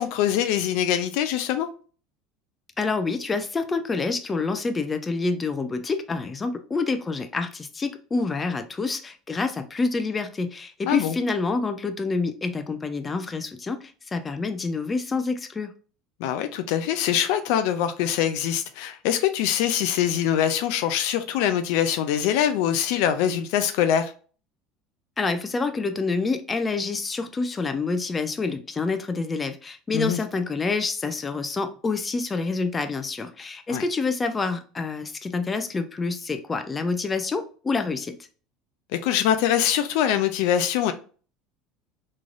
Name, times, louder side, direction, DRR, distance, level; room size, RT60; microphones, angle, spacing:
voice 1, 0.0-1.7 10.9-11.2 16.2-24.1 29.9-30.2 33.7-33.8 38.9-40.9, left 10 dB, 70° left, 0.4 m, -23 dB
voice 2, 2.8-15.7 25.2-38.2, left 4 dB, 25° left, 0.6 m, -27 dB
3.7 x 3.2 x 2.5 m
hypercardioid pair, 85°, 0 cm